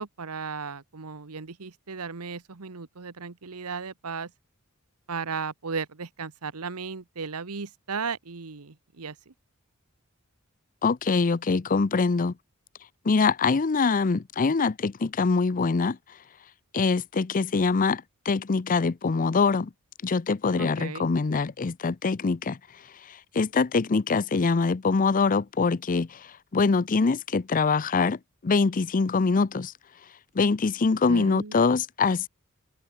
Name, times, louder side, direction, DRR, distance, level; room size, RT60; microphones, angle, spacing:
voice 1, 0.0-4.3 5.1-9.3 20.6-21.1 31.1-31.6, right 5 dB, 90° right, 1.1 m, -35 dB
voice 2, 10.8-12.3 13.0-16.0 16.7-19.7 20.0-22.6 23.3-26.3 26.5-28.2 28.4-29.7 30.3-32.3, left 4 dB, 40° left, 0.5 m, -24 dB
open air
head